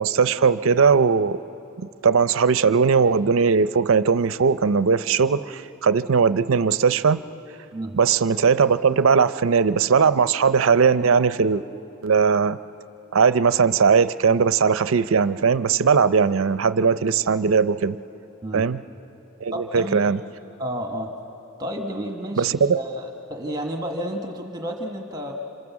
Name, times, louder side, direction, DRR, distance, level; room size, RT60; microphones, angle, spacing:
voice 1, 0.0-1.4 1.8-7.2 7.9-11.6 12.0-12.6 13.1-18.0 18.5-18.8 19.4-20.2 22.4-22.8, right 5 dB, 70° right, 14 dB, 0.5 m, -19 dB
voice 2, 19.5-20.0 20.6-21.1 21.6-25.3, equal, 20° right, 3 dB, 1.3 m, -31 dB
27.0 x 27.0 x 7.2 m, 2.9 s
head